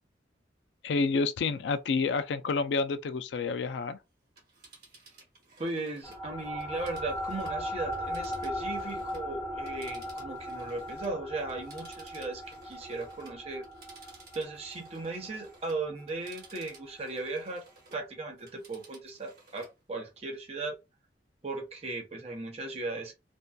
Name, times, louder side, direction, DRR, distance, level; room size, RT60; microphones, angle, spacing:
voice 1, 0.8-4.0, left 4 dB, 75° left, 0.3 m, -29 dB
Telephone, 4.2-9.3 9.6-18.1 18.4-19.8 20.2-20.3, right 3 dB, 55° right, 1.1 m, -56 dB
voice 2, 5.6-13.6 14.3-17.6 17.9-20.7 21.4-23.1, right 2 dB, 35° right, 0.7 m, -37 dB
sound 1, 6.0-16.8, equal, 20° left, 0.8 m, -38 dB
2.6 x 2.2 x 2.2 m
head